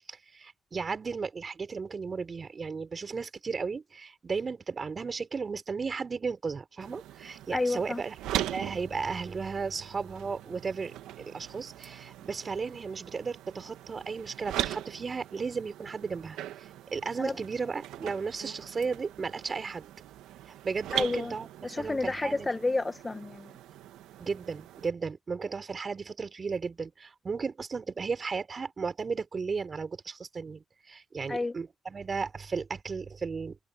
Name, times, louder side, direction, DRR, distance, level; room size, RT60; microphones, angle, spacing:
voice 1, 0.1-19.9 20.6-21.5 21.8-22.5 24.2-33.6, right 5 dB, 45° right, 5.4 m, -35 dB
sound 1, 6.8-24.9, right 13 dB, 90° right, 1.6 m, -40 dB
voice 2, 7.5-8.0 17.2-17.4 20.9-21.4 21.6-23.5 31.3-31.6, left 2 dB, 25° left, 1.4 m, -30 dB
supercardioid pair, 55°, 0 cm